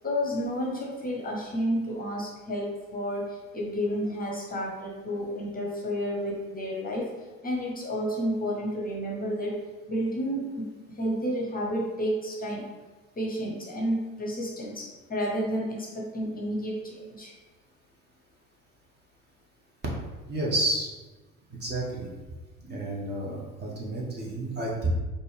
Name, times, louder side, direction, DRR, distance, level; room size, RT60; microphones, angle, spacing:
voice 1, 0.0-9.6 9.9-10.7 11.0-12.7 13.1-17.3, equal, 20° left, -2 dB, 0.9 m, -31 dB
voice 2, 20.3-20.9 21.6-22.1 22.7-24.9, right 1 dB, 25° right, -3 dB, 1.1 m, -30 dB
4.2 x 2.6 x 3.3 m, 1.2 s
hypercardioid pair, 65°, 41 cm